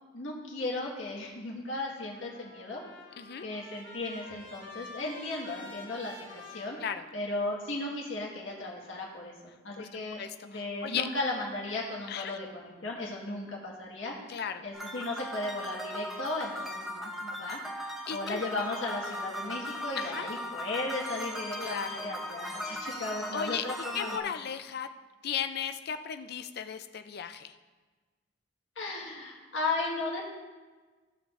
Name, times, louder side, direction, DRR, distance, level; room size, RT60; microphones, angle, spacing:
voice 1, 0.1-2.8 3.4-6.8 7.1-9.3 9.6-14.2 14.6-17.6 18.1-24.3 28.8-30.2, left 2 dB, 90° left, -3 dB, 1.7 m, -36 dB
Trumpet, 1.9-7.5, left 2 dB, 85° right, 3.0 m, -49 dB
voice 2, 9.8-11.1 12.1-12.4 14.3-14.6 18.1-18.4 20.0-20.3 21.6-22.1 23.3-23.6 23.9-24.9 25.2-27.5, left 8 dB, 55° left, 9 dB, 0.5 m, -36 dB
sound 1, 14.7-24.2, equal, ahead, 0.8 m, -38 dB
15.5 x 6.0 x 2.6 m, 1.3 s
head